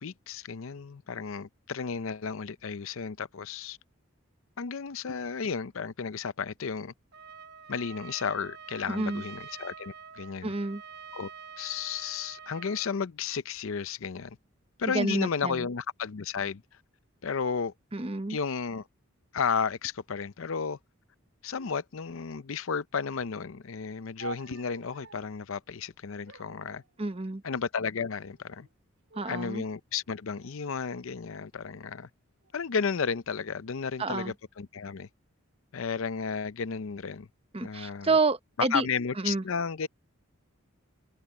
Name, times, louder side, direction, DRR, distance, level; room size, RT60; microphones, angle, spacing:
voice 1, 0.0-3.8 4.6-6.9 7.7-10.5 11.1-11.3 11.6-14.4 14.8-16.6 17.2-17.7 18.3-18.9 19.3-20.8 21.4-26.8 27.4-28.7 29.2-32.1 32.5-35.1 35.7-37.3 37.6-38.1 38.6-39.9, left 6 dB, 70° left, 0.6 m, -33 dB
Trumpet, 7.1-13.0, right 7 dB, 50° right, 1.0 m, -46 dB
voice 2, 8.9-9.2 10.4-10.8 14.9-15.7 17.9-18.4 27.0-27.4 29.2-29.6 34.0-34.3 37.5-38.9 39.2-39.4, right 3 dB, 25° right, 0.9 m, -29 dB
sound 1, 24.2-25.5 26.3-27.5 28.2-28.7 29.1-29.7 30.4-31.6 32.4-32.9, right 5 dB, 65° right, 3.9 m, -49 dB
head